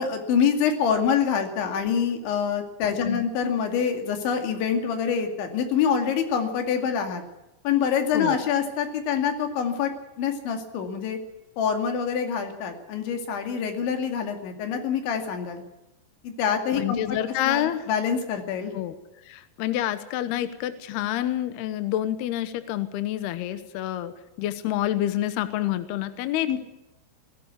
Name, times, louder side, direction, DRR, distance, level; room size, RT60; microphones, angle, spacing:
voice 1, 0.0-7.2 7.6-9.9 10.2-11.2 11.6-15.6 16.2-17.2 17.5-18.7 26.5-26.6, left 7 dB, 90° left, 5 dB, 4.7 m, -26 dB
voice 2, 16.7-17.8 18.7-18.9 19.3-24.1 24.4-26.6, left 12 dB, 75° left, 11 dB, 2.9 m, -28 dB
20.0 x 17.5 x 8.4 m, 0.96 s
omnidirectional pair, 5.1 m